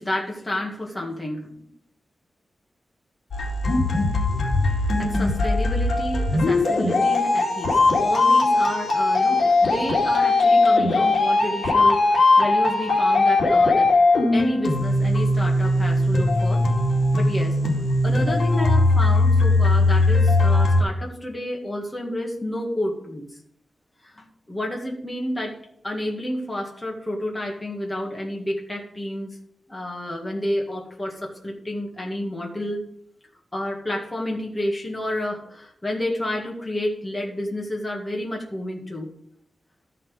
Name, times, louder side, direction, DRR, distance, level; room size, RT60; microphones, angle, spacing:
voice 1, 0.0-1.6 4.6-16.6 17.1-17.6 18.0-23.3 24.0-25.6 25.8-29.3 29.7-32.9 33.5-39.1, left 1 dB, 15° left, -1 dB, 2.0 m, -30 dB
sound 1, 3.3-20.8, left 2 dB, 70° left, 2.3 m, -19 dB
13.0 x 5.9 x 5.1 m, 0.67 s
wide cardioid pair, 135°, 0 cm